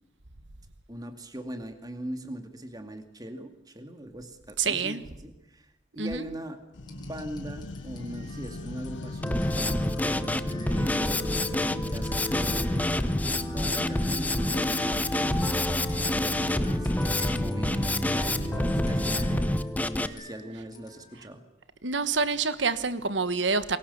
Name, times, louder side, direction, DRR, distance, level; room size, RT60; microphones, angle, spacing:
voice 1, 0.9-12.9 13.5-19.6 20.0-21.4, right 1 dB, 20° right, 2.4 m, -41 dB
voice 2, 4.6-5.0 6.0-6.3 21.8-23.8, right 4 dB, 70° right, 1.4 m, -27 dB
sound 1, 6.7-19.5, left 2 dB, 75° left, 0.8 m, -39 dB
sound 2, 6.8-21.3, left 2 dB, 25° left, 6.1 m, -51 dB
Drum kit, 9.2-20.1, left 1 dB, 10° left, 0.8 m, -27 dB
28.0 x 22.5 x 7.1 m
head